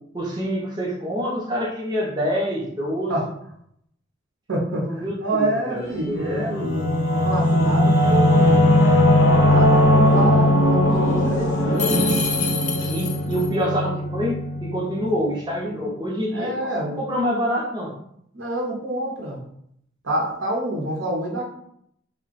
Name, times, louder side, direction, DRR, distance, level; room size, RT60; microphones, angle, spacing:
voice 1, 0.1-3.2 4.8-6.7 12.9-16.7 17.0-17.9, equal, 20° right, -3 dB, 0.5 m, -26 dB
voice 2, 4.5-8.7 9.4-12.1 16.3-17.0 18.3-19.4 20.0-21.4, right 1 dB, 90° right, -2 dB, 0.9 m, -27 dB
Singing / Musical instrument, 6.0-15.2, left 1 dB, 85° left, 0.7 m, -19 dB
sound 1, 11.8-13.5, left 6 dB, 40° left, 0.5 m, -27 dB
2.4 x 2.1 x 3.9 m, 0.70 s
head